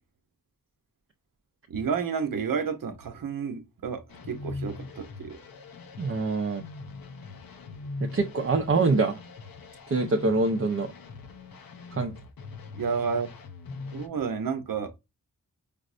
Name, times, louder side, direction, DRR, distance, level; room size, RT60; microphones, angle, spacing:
voice 1, 1.7-5.4 12.7-13.3 13.9-14.9, right 6 dB, 75° right, 0.7 m, -31 dB
sound 1, 4.1-14.1, left 3 dB, 90° left, 0.7 m, -42 dB
voice 2, 6.0-6.6 8.0-9.2 9.9-10.9 11.9-12.2, right 3 dB, 40° right, 0.5 m, -25 dB
5.1 x 2.0 x 2.4 m
wide cardioid pair, 70°, 34 cm